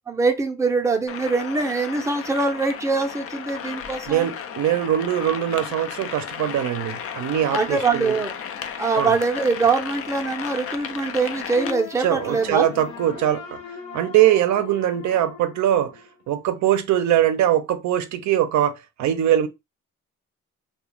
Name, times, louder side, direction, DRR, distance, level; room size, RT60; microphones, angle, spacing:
voice 1, 0.1-4.3 7.5-8.3 8.8-12.7, right 4 dB, 10° right, 0.5 m, -23 dB
sound 1, 1.1-11.7, left 8 dB, 50° left, 0.4 m, -34 dB
voice 2, 4.1-8.1 9.0-9.1 12.0-13.6 13.9-15.9 16.3-19.5, right 11 dB, 70° right, 0.5 m, -22 dB
sound 2, 11.5-16.6, left 7 dB, 65° left, 0.9 m, -38 dB
2.4 x 2.2 x 3.0 m
cardioid pair, 90°, 30 cm